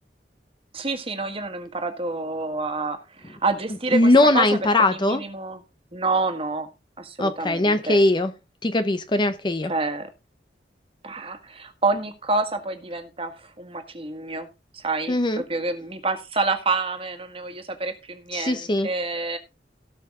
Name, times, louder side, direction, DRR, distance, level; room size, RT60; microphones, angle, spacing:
voice 1, 0.7-4.5 4.8-5.6 5.9-6.7 7.0-8.0 9.7-10.1 11.0-14.5 14.7-19.4, right 3 dB, 35° right, 1.7 m, -28 dB
voice 2, 3.9-5.2 7.2-8.3 8.6-9.7 15.1-15.4 18.3-18.9, left 2 dB, 25° left, 0.7 m, -20 dB
17.0 x 5.8 x 3.7 m
head